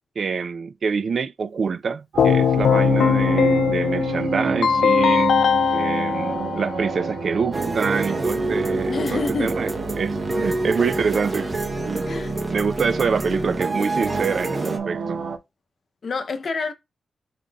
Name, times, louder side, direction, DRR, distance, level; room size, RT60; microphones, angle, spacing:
voice 1, 0.2-5.4 5.7-11.5 11.8-12.1 12.5-15.2, right 5 dB, 45° right, 0.4 m, -26 dB
sound 1, 2.1-15.4, right 5 dB, 70° right, 1.1 m, -30 dB
Keyboard (musical), 2.2-7.1, left 7 dB, 80° left, 0.4 m, -20 dB
sound 2, 7.5-14.8, right 2 dB, 20° right, 0.9 m, -27 dB
voice 2, 8.9-9.6 10.4-10.6 12.0-12.4 16.0-16.7, left 4 dB, 45° left, 0.7 m, -28 dB
5.7 x 3.7 x 2.3 m
wide cardioid pair, 175°, 0 cm